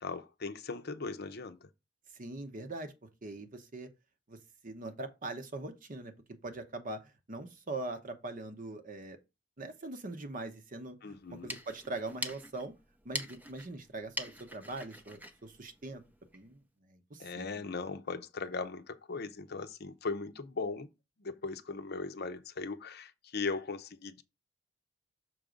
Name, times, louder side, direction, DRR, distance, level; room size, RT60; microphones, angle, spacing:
voice 1, 0.0-1.6 11.0-11.5 17.2-20.9 21.2-24.2, left 4 dB, 55° left, 0.7 m, -38 dB
voice 2, 2.2-2.9 3.2-3.9 4.3-4.4 4.6-9.2 9.6-12.7 13.0-16.0 16.3-16.6 16.9-17.7, right 2 dB, 40° right, 0.9 m, -42 dB
sound 1, 11.2-16.5, equal, 10° right, 0.7 m, -44 dB
6.3 x 3.7 x 5.1 m
head